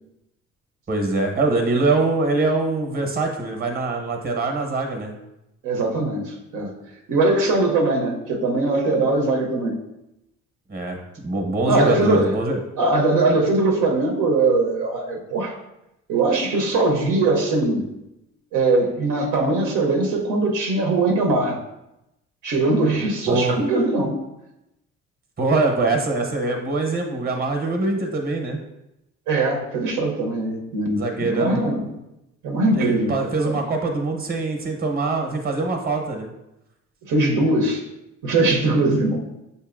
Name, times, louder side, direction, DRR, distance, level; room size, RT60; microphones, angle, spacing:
voice 1, 0.9-5.1 10.7-12.6 23.3-23.5 25.4-28.6 30.9-31.6 32.7-36.3, right 2 dB, 30° right, 3 dB, 0.9 m, -23 dB
voice 2, 5.6-6.7 7.1-9.8 11.7-12.3 12.8-15.5 16.1-17.9 18.5-21.6 22.4-24.2 29.3-31.9 32.4-33.6 37.1-37.8 38.2-39.2, right 2 dB, 85° right, 1 dB, 0.8 m, -21 dB
6.7 x 2.7 x 2.5 m, 0.90 s
cardioid pair, 90°, 30 cm